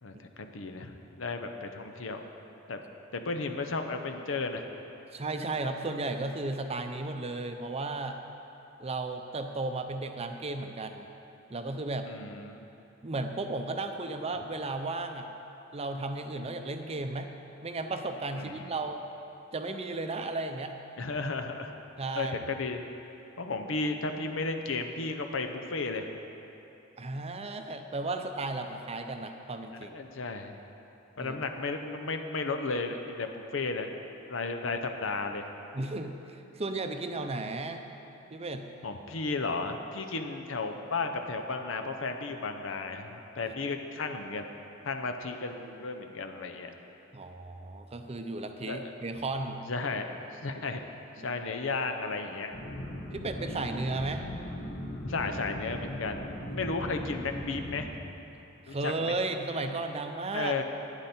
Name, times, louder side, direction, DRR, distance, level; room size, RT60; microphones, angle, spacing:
voice 1, 0.0-2.2 2.7-2.8 3.1-4.7 12.1-12.6 18.3-18.7 21.0-21.7 22.2-22.8 23.4-26.1 29.8-30.6 31.2-34.0 34.3-35.5 38.8-44.5 44.8-46.7 48.7-48.9 49.7-50.8 51.2-52.5 55.0-57.9 58.7-59.1 60.3-60.6, left 3 dB, 75° left, 5 dB, 0.8 m, -34 dB
voice 2, 5.1-8.2 8.8-11.1 11.5-12.1 13.0-15.3 15.7-17.3 17.6-19.0 19.5-20.7 22.0-22.4 27.0-29.9 31.2-31.4 35.7-37.8 38.3-38.7 43.5-43.6 47.1-49.6 51.2-51.3 53.1-54.3 56.5-56.6 58.7-60.5, right 2 dB, 30° right, 6 dB, 0.6 m, -34 dB
sound 1, 52.5-57.8, left 1 dB, 55° left, 1.3 m, -39 dB
11.5 x 9.8 x 4.3 m, 2.9 s
head